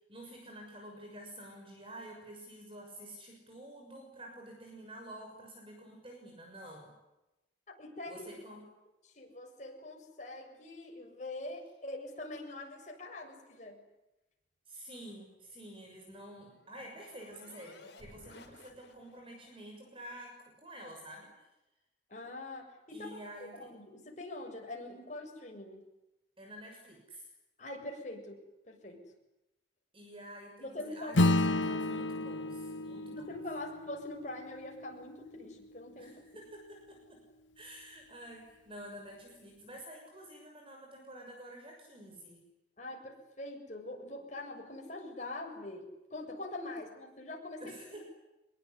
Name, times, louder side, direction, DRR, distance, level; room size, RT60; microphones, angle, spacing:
voice 1, 0.1-6.9 8.1-8.7 14.7-21.5 22.9-23.7 26.4-27.3 29.9-33.3 36.0-37.2 37.5-42.4 47.6-48.0, right 1 dB, 30° right, 2 dB, 6.6 m, -49 dB
voice 2, 7.8-8.3 9.0-13.8 22.1-25.8 27.6-29.0 30.6-31.3 33.1-36.2 42.8-47.7, left 2 dB, 40° left, 1 dB, 7.3 m, -44 dB
sound 1, 15.8-19.4, left 2 dB, 65° left, 5.2 m, -57 dB
Acoustic guitar / Strum, 31.1-35.9, left 2 dB, 90° left, 1.1 m, -32 dB
25.5 x 22.0 x 9.9 m, 0.94 s
head